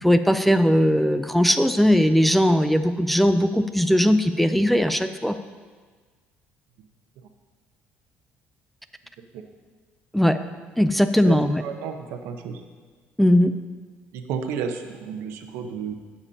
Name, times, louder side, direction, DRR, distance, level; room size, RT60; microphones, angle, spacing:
voice 1, 0.0-5.4 10.1-10.4 10.8-11.6 13.2-13.5, equal, 5° left, 10 dB, 0.3 m, -19 dB
voice 2, 11.2-12.6 14.1-15.9, right 6 dB, 85° right, 5 dB, 0.9 m, -32 dB
19.0 x 7.0 x 2.8 m, 1.5 s
cardioid pair, 145°, 4 cm